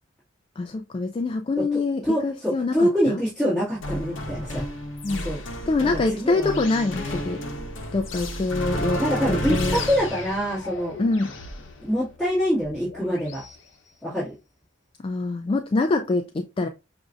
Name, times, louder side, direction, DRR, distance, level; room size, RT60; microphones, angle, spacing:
voice 1, 0.6-3.2 5.0-5.3 5.7-7.4 7.9-9.0 9.3-9.8 11.0-11.3 15.0-16.7, left 3 dB, 25° left, 0.3 m, -25 dB
voice 2, 2.0-4.7 5.2-5.4 6.1-6.5 9.0-11.0 11.8-13.4 14.0-14.3, equal, 5° left, 2.1 m, -25 dB
sound 1, 3.8-13.6, left 1 dB, 75° left, 0.8 m, -32 dB
5.9 x 2.6 x 2.4 m
head